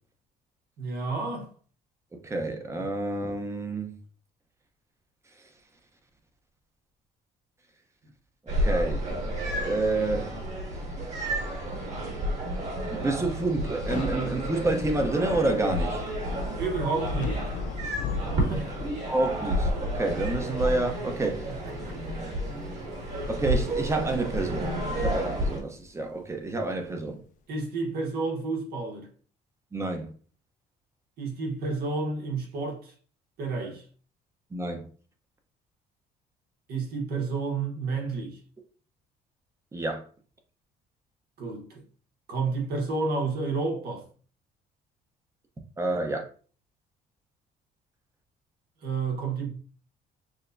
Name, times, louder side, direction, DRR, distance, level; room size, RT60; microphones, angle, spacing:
voice 1, 0.8-1.5 16.6-17.4 18.4-18.7 21.5-21.9 27.5-29.1 31.2-32.9 33.4-33.9 36.7-38.4 41.4-41.8 42.3-44.1 48.8-49.5, right 4 dB, 70° right, 1.2 m, -30 dB
voice 2, 2.1-3.9 8.5-9.2 9.6-10.3 12.9-16.0 19.1-21.5 23.3-27.2 29.7-30.1 34.5-34.8 39.7-40.1 45.8-46.3, right 2 dB, 15° right, 0.8 m, -29 dB
sound 1, 8.5-25.6, right 1 dB, 45° right, 1.7 m, -31 dB
Thunder / Rain, 13.7-26.9, left 5 dB, 50° left, 0.4 m, -40 dB
6.4 x 2.2 x 2.6 m
cardioid pair, 110°, 17 cm